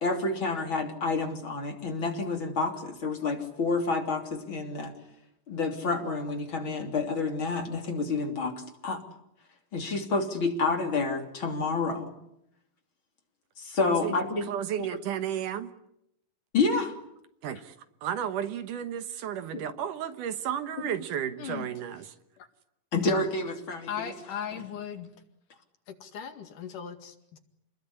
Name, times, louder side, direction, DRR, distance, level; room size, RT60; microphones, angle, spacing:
voice 1, 0.0-4.9 5.5-9.0 9.7-12.1 13.6-14.5 14.8-14.9 16.5-16.9 22.9-23.9, left 3 dB, 35° left, 3 dB, 3.7 m, -29 dB
voice 2, 13.8-14.1 14.5-15.7 17.4-17.7 18.0-22.0, right 9 dB, 70° right, 11 dB, 2.6 m, -33 dB
voice 3, 23.9-25.1 25.9-27.4, left 8 dB, 65° left, 7 dB, 3.5 m, -38 dB
28.5 x 21.0 x 9.9 m, 0.81 s
omnidirectional pair, 4.0 m